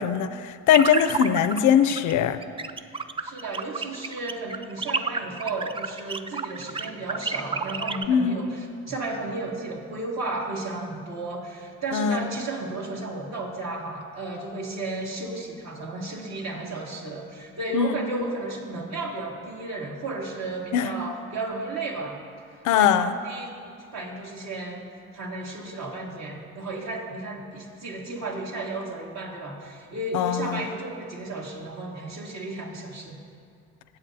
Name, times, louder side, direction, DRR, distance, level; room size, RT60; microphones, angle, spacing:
voice 1, 0.0-2.4 8.1-8.5 11.9-12.2 17.7-18.0 20.7-20.9 22.6-23.2 30.1-30.6, left 8 dB, 75° left, 12 dB, 0.5 m, -21 dB
sound 1, 0.7-1.6 1.9-2.1 2.4-8.1, right 4 dB, 20° right, 0.3 m, -30 dB
voice 2, 3.2-22.2 22.7-23.6 23.9-24.9 25.1-33.2, right 2 dB, 65° right, -1 dB, 1.9 m, -33 dB
18.5 x 8.1 x 2.7 m, 2.3 s
cardioid pair, 90°, 30 cm